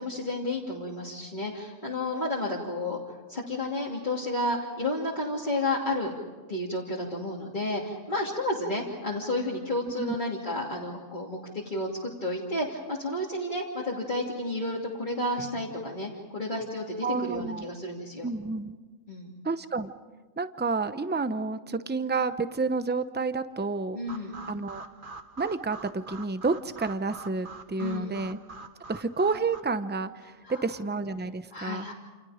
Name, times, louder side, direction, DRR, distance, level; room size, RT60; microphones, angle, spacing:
voice 1, 0.0-3.0 3.3-6.1 6.5-18.3 19.1-19.3 23.9-24.4 27.8-28.2 30.4-30.6 31.5-31.9, left 1 dB, 40° left, -6 dB, 3.0 m, -31 dB
voice 2, 17.0-17.7 18.2-18.8 19.4-19.9 20.4-24.0 24.5-24.8 25.4-28.4 28.9-31.9, right 4 dB, 10° right, 11 dB, 0.6 m, -30 dB
sound 1, 24.1-29.6, right 3 dB, 45° right, 1.2 m, -45 dB
29.0 x 28.5 x 5.1 m, 1.3 s
omnidirectional pair, 1.3 m